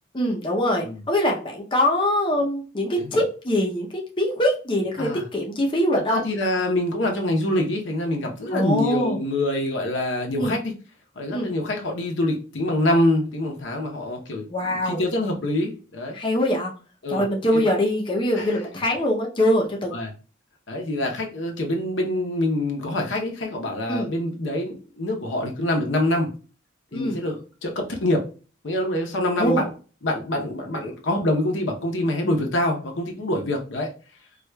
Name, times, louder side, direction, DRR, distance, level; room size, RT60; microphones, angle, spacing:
voice 1, 0.1-6.2 8.5-9.2 10.4-10.5 11.3-11.5 14.5-15.0 16.1-16.7 17.1-19.9 23.9-24.1 26.9-27.2 29.4-29.6, equal, 25° left, 0.5 m, -23 dB
voice 2, 6.1-10.7 11.2-16.2 17.0-17.2 18.4-18.5 19.9-20.1 20.7-26.3 26.9-28.3 28.6-29.7 30.0-33.9, left 1 dB, 70° left, 0.7 m, -25 dB
4.6 x 2.3 x 2.2 m
head